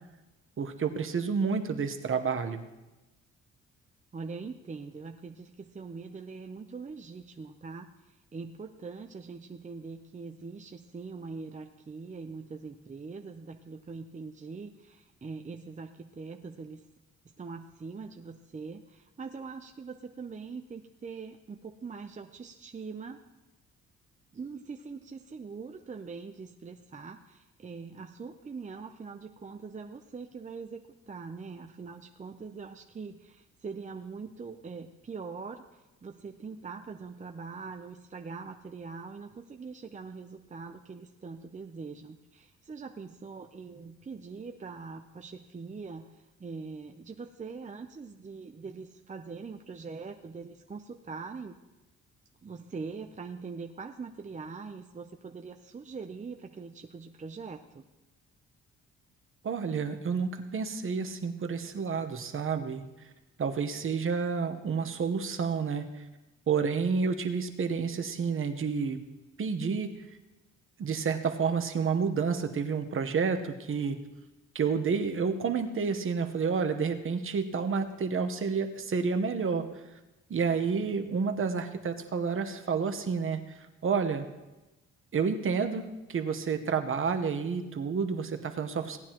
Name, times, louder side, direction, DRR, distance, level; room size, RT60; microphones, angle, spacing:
voice 1, 0.6-2.6 59.4-62.8 63.4-66.0 66.5-69.0 69.4-69.9 70.8-74.0 74.5-79.7 80.3-84.2 85.1-89.0, right 5 dB, 45° right, 7 dB, 1.1 m, -30 dB
voice 2, 4.1-16.8 17.4-23.2 24.3-51.5 52.4-57.8, right 4 dB, 25° right, 4 dB, 0.7 m, -42 dB
17.5 x 9.6 x 3.0 m, 1.1 s
cardioid pair, 90°, 30 cm